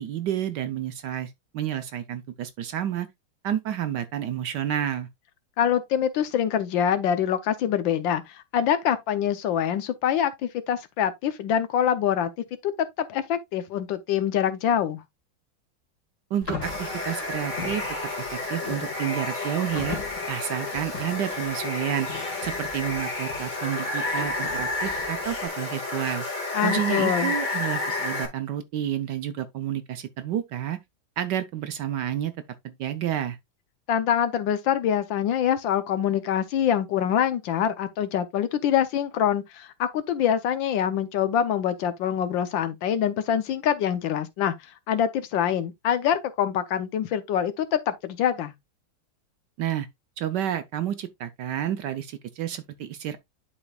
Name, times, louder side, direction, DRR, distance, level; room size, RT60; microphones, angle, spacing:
voice 1, 0.0-3.1 3.4-5.1 16.3-17.8 18.3-20.0 20.3-22.1 22.4-26.3 26.6-30.8 31.2-32.3 32.6-33.4 49.6-49.9 50.2-53.2, right 10 dB, 70° right, 1.1 m, -30 dB
voice 2, 5.6-12.3 12.6-12.7 13.0-15.0 26.5-27.3 33.9-44.5 44.9-48.5, left 9 dB, 70° left, 1.4 m, -25 dB
sound 1, 16.4-25.5, left 4 dB, 40° left, 2.3 m, -40 dB
Water, 16.6-28.3, left 2 dB, 20° left, 2.0 m, -30 dB
11.0 x 4.3 x 2.3 m
omnidirectional pair, 2.3 m